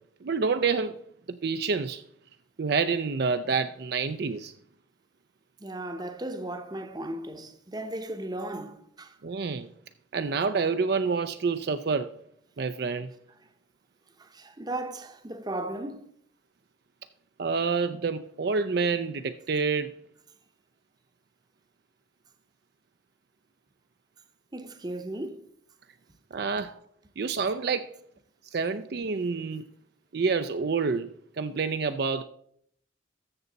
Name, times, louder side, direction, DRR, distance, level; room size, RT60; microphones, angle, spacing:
voice 1, 0.2-0.9 1.3-2.0 2.6-4.5 9.2-9.7 10.1-12.1 12.6-13.1 17.4-19.9 26.3-26.8 27.2-27.9 28.5-29.6 30.1-31.1 31.4-32.2, right 5 dB, 55° right, 0.4 m, -28 dB
voice 2, 5.6-9.2 14.2-16.1 24.5-25.5, right 1 dB, 20° right, 0.8 m, -36 dB
13.5 x 7.0 x 4.0 m
head